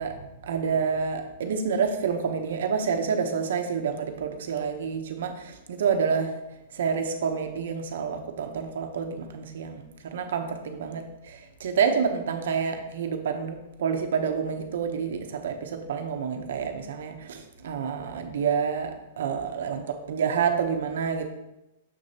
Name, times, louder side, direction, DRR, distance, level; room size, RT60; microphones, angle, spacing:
voice 1, 0.0-6.4 6.7-21.2, right 6 dB, 65° right, 5 dB, 0.8 m, -28 dB
6.7 x 6.4 x 2.9 m, 0.93 s
supercardioid pair, 175°, 0 cm